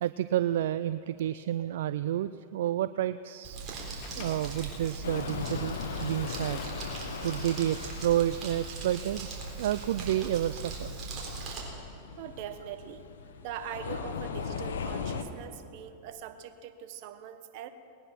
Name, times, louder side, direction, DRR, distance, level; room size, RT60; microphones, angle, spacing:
voice 1, 0.0-3.7 4.2-6.7 7.2-9.3 9.6-10.9, right 12 dB, 75° right, 14 dB, 0.3 m, -30 dB
Crumpling crinkling, 3.4-11.6, right 4 dB, 40° right, 3.8 m, -40 dB
Accelerating revving vroom / Mechanisms, 4.0-8.9, left 7 dB, 50° left, 1.4 m, -49 dB
sound 1, 5.0-15.2, left 6 dB, 85° left, 1.1 m, -39 dB
voice 2, 12.2-13.1 13.4-17.7, right 9 dB, 55° right, 9 dB, 1.1 m, -42 dB
20.0 x 10.0 x 5.8 m, 2.6 s
hypercardioid pair, 120°, 0 cm